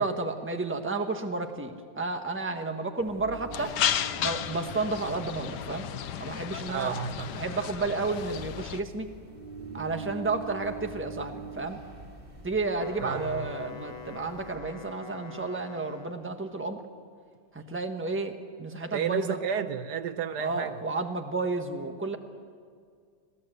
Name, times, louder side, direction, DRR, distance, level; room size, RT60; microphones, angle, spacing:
voice 1, 0.0-3.8 4.2-5.9 6.2-7.0 7.4-9.1 9.7-11.8 12.4-16.8 17.5-19.4 20.4-22.2, right 3 dB, 10° right, 1.2 m, -31 dB
sound 1, 3.0-14.6, right 3 dB, 30° right, 3.4 m, -45 dB
sound 2, 3.5-8.8, left 10 dB, 75° left, 1.3 m, -33 dB
voice 2, 6.7-7.4 13.0-13.5 18.9-20.8, right 8 dB, 75° right, 1.3 m, -32 dB
Wind instrument woodwind instrument, 12.6-16.5, left 6 dB, 30° left, 0.9 m, -44 dB
26.5 x 17.0 x 8.0 m
omnidirectional pair, 1.8 m